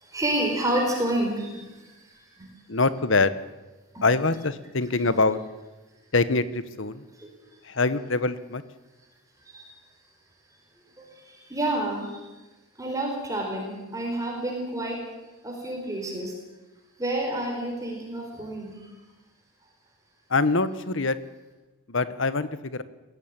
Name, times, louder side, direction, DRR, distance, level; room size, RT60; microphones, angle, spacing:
voice 1, 0.0-2.5 3.9-4.0 7.2-7.3 9.4-9.7 11.0-12.2 12.8-15.0 15.4-16.3 17.0-18.9, right 1 dB, 15° right, 0 dB, 4.6 m, -29 dB
voice 2, 2.7-3.3 4.0-5.4 6.1-7.0 7.6-8.6 20.3-21.2 21.9-22.8, left 3 dB, 55° left, 14 dB, 1.1 m, -24 dB
21.0 x 16.5 x 8.8 m, 1.1 s
head